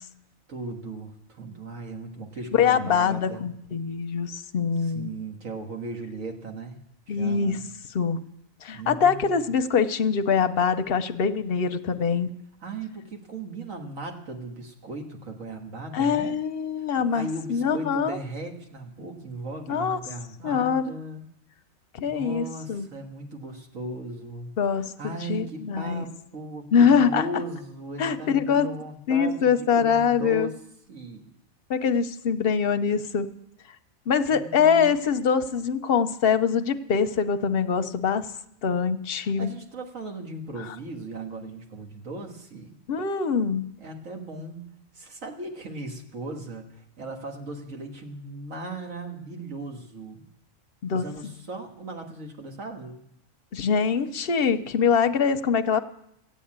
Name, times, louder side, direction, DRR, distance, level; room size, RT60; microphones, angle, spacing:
voice 1, 0.5-3.5 4.8-6.8 7.1-7.6 8.7-9.4 12.6-16.4 17.0-21.3 22.0-24.5 24.8-30.5 30.9-31.3 34.3-34.9 39.2-42.8 43.8-50.2 50.9-53.0, right 2 dB, 75° right, 2 dB, 2.0 m, -37 dB
voice 2, 2.5-5.1 7.1-7.6 7.9-8.2 8.6-12.3 15.9-18.2 19.7-20.0 20.4-20.9 21.9-22.9 24.6-26.1 26.7-27.2 28.0-28.7 29.1-30.5 31.7-33.3 34.1-38.3 38.6-39.5 42.9-43.7 50.8-51.0 53.5-55.8, left 6 dB, 55° left, 10 dB, 0.8 m, -23 dB
14.5 x 8.2 x 8.7 m, 0.79 s
omnidirectional pair, 1.4 m